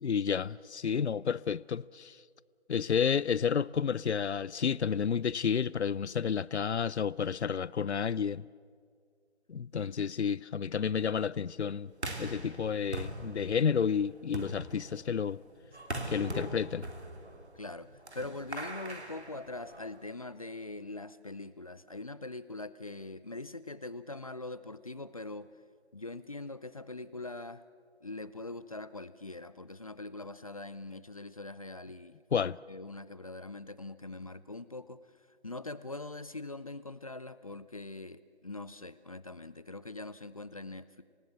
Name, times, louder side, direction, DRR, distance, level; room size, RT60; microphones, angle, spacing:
voice 1, 0.0-2.2 2.7-8.4 9.5-11.9 12.2-15.4 16.1-16.9 32.3-32.6, left 7 dB, 75° left, 0.6 m, -31 dB
sound 1, 11.9-20.1, right 1 dB, 75° right, 3.2 m, -42 dB
voice 2, 17.5-17.9 18.1-25.5 25.9-27.6 28.0-35.0 35.4-41.0, left 2 dB, 30° left, 0.5 m, -43 dB
28.0 x 18.5 x 8.0 m
figure-of-eight pair, 155°, 34 cm